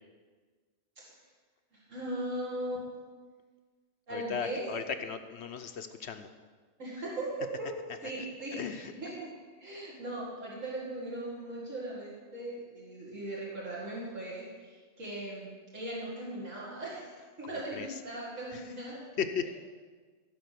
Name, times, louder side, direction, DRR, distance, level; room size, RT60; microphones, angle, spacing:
voice 1, 1.7-2.8 4.1-4.6 6.8-7.7 8.0-9.3 9.6-17.1 17.4-19.0 19.4-19.5, right 1 dB, 75° right, -7 dB, 2.5 m, -39 dB
voice 2, 4.1-6.3 8.6-8.9 17.4-17.9 18.5-18.6 19.2-19.5, left 7 dB, 60° left, 8 dB, 0.9 m, -36 dB
15.5 x 5.2 x 6.8 m, 1.5 s
omnidirectional pair, 1.3 m